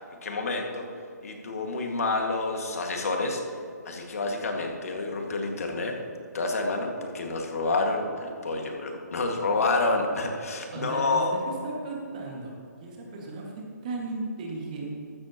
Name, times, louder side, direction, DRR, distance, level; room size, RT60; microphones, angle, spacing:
voice 1, 0.2-0.9 1.2-3.4 3.8-6.0 6.3-11.3, left 3 dB, 55° left, 2 dB, 1.8 m, -28 dB
voice 2, 10.7-12.5 12.8-14.9, right 3 dB, 25° right, -1 dB, 1.8 m, -35 dB
14.5 x 12.5 x 2.9 m, 2.5 s
hypercardioid pair, 170°, 9 cm